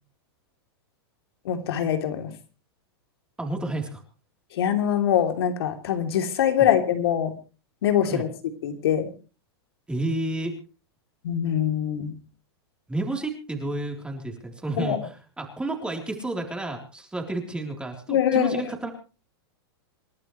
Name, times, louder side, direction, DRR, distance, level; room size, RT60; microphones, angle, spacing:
voice 1, 1.4-2.3 4.5-7.3 7.8-8.3 8.6-9.1 11.2-12.1 14.8-15.0 18.1-18.6, left 9 dB, 70° left, 6 dB, 3.1 m, -23 dB
voice 2, 3.4-4.0 6.6-6.7 8.0-8.3 9.9-10.5 12.9-18.9, right 2 dB, 5° right, 2 dB, 3.6 m, -31 dB
28.0 x 12.0 x 3.2 m, 0.35 s
hypercardioid pair, 125°, 13 cm